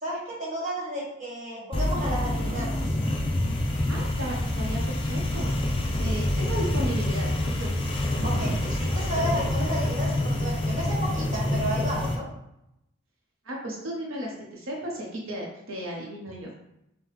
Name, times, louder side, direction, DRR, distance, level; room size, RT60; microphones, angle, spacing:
voice 1, 0.0-2.9 8.2-8.5 8.9-12.3, right 1 dB, 40° right, -5 dB, 1.4 m, -32 dB
sound 1, 1.7-12.2, left 1 dB, 25° left, 0.5 m, -27 dB
voice 2, 3.9-8.6 13.4-16.5, right 1 dB, 90° right, -2 dB, 0.8 m, -35 dB
5.7 x 2.2 x 3.1 m, 0.85 s
head